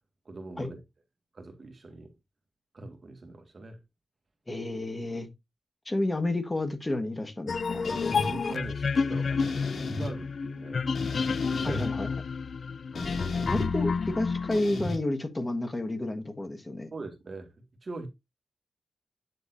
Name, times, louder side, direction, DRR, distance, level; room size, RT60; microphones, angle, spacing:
voice 1, 0.3-0.8 1.3-2.1 2.7-3.8 7.9-10.8 11.5-11.9 12.9-13.5 16.9-18.1, right 3 dB, 40° right, 1.9 m, -42 dB
voice 2, 4.5-5.3 5.8-7.9 11.6-12.1 13.4-16.9, left 2 dB, 20° left, 1.4 m, -31 dB
sound 1, 7.5-14.6, left 5 dB, 50° left, 0.5 m, -30 dB
sound 2, 7.8-8.3 9.4-10.1 11.0-11.9 13.0-13.7 14.5-15.0, left 2 dB, 70° left, 2.7 m, -35 dB
9.0 x 7.0 x 2.6 m
wide cardioid pair, 130°, 0 cm